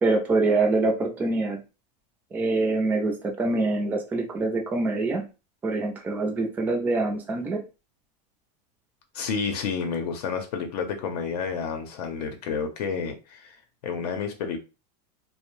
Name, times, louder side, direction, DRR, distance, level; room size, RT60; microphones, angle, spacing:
voice 1, 0.0-1.6 2.3-5.3 5.6-7.6, right 3 dB, 10° right, 0.3 m, -25 dB
voice 2, 9.1-13.6 13.8-14.6, left 6 dB, 75° left, 0.6 m, -30 dB
2.6 x 2.0 x 3.0 m
supercardioid pair, 155°, 21 cm